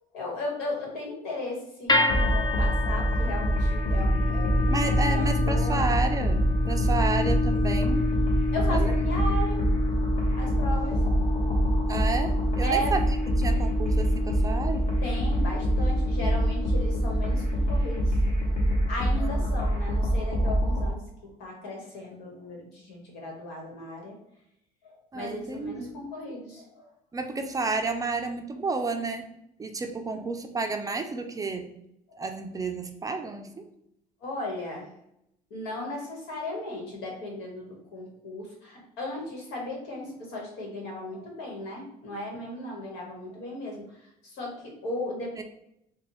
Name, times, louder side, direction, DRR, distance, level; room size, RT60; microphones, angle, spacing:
voice 1, 0.1-5.9 8.5-9.6 9.9-10.0 10.3-11.1 12.6-12.9 15.0-18.2 18.9-24.1 24.8-26.9 30.1-30.2 32.1-32.2 34.2-34.9 35.5-45.3, left 1 dB, 80° left, -1 dB, 1.3 m, -36 dB
sound 1, 1.9-18.1, left 3 dB, 25° left, 0.6 m, -31 dB
sound 2, 2.1-20.9, equal, 45° left, 1.1 m, -25 dB
voice 2, 4.7-8.1 8.7-8.9 11.9-13.1 13.4-14.9 19.2-19.3 25.1-26.0 27.1-29.3 29.6-31.7 32.2-33.7 45.4-45.5, right 3 dB, 20° right, 5 dB, 0.4 m, -31 dB
4.0 x 2.2 x 3.0 m, 0.79 s
supercardioid pair, 95°, 17 cm